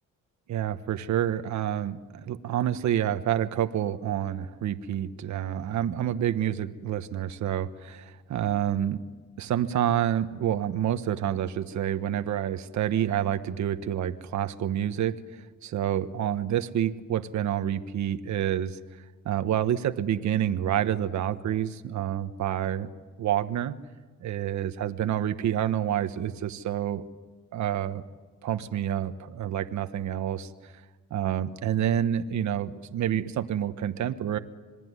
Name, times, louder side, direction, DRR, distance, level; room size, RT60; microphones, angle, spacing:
voice 1, 0.5-9.0 9.4-15.1 15.6-18.8 19.2-22.9 23.2-23.7 24.2-27.0 27.5-28.0 28.4-30.5 31.1-34.4, right 10 dB, 70° right, 10 dB, 1.3 m, -28 dB
27.0 x 21.0 x 9.7 m, 1.3 s
cardioid pair, 90°, 30 cm